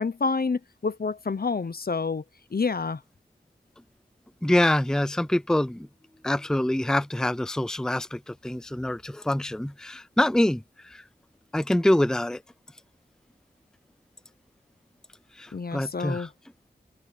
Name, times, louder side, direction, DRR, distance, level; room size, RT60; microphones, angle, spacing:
voice 1, 0.0-2.2 2.5-3.0 15.5-16.3, left 4 dB, 50° left, 0.8 m, -28 dB
voice 2, 4.4-5.9 6.2-11.0 11.5-12.4 15.4-16.3, left 1 dB, 5° left, 0.6 m, -25 dB
wide cardioid pair, 60°, 19 cm